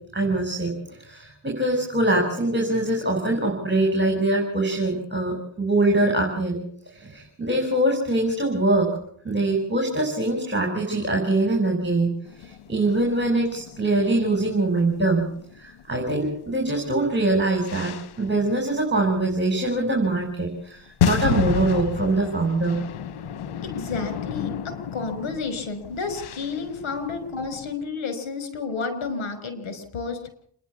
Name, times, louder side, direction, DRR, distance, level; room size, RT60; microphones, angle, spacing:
voice 1, 0.1-0.7 1.0-8.9 9.2-12.1 12.4-15.3 15.5-22.8, right 2 dB, 20° right, 2 dB, 5.8 m, -23 dB
sound 1, 12.2-16.3 16.7-18.3 18.9-19.0 19.8-19.9 20.9-27.7, left 8 dB, 90° left, 1.3 m, -31 dB
voice 2, 23.6-30.3, left 4 dB, 70° left, 10 dB, 5.8 m, -31 dB
28.0 x 11.0 x 8.5 m, 0.64 s
cardioid pair, 75°, 50 cm